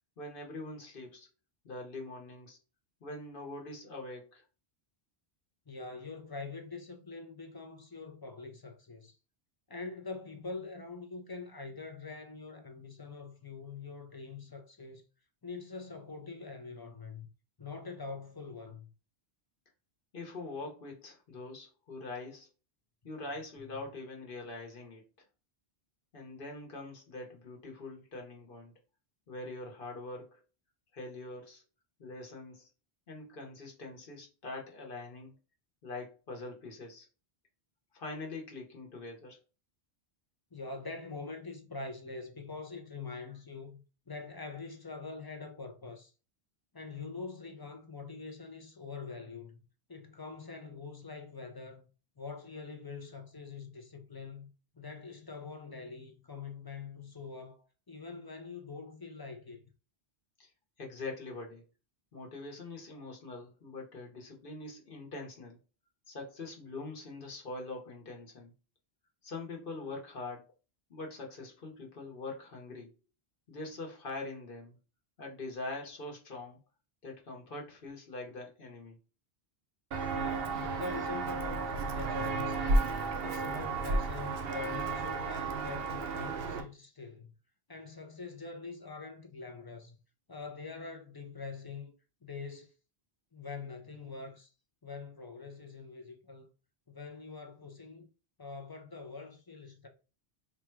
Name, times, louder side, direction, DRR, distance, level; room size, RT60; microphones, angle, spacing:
voice 1, 0.2-1.3 1.6-2.6 3.0-4.4 20.1-22.5 23.0-25.0 26.1-28.7 29.3-30.4 30.9-31.6 32.0-32.7 33.1-35.4 35.8-37.1 37.9-39.4 60.4-60.5 60.8-61.6 62.1-65.6 66.1-68.5 69.2-70.5 70.9-72.9 73.5-74.8 75.2-76.6 77.0-79.0, left 2 dB, 55° left, 1.1 m, -43 dB
voice 2, 5.7-9.2 9.7-15.0 15.4-17.3 17.6-18.9 23.7-23.8 40.5-46.1 46.7-49.6 49.9-51.8 52.2-54.5 54.7-59.6 80.1-82.9 83.2-87.3 87.7-90.0 90.3-91.9 92.2-92.7 93.3-94.5 94.8-96.5 96.9-98.1 98.4-99.9, left 4 dB, 30° left, 0.4 m, -44 dB
Walk footsteps, 79.9-86.6, right 3 dB, 65° right, 0.8 m, -32 dB
3.6 x 2.3 x 4.5 m
omnidirectional pair, 1.1 m